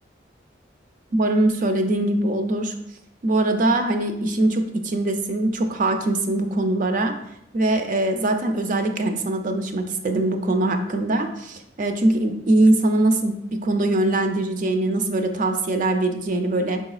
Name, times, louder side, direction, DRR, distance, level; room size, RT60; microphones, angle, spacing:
voice 1, 1.1-2.7 3.2-7.1 7.5-16.8, right 2 dB, 45° right, 6 dB, 0.4 m, -22 dB
5.5 x 3.9 x 2.4 m, 0.78 s
head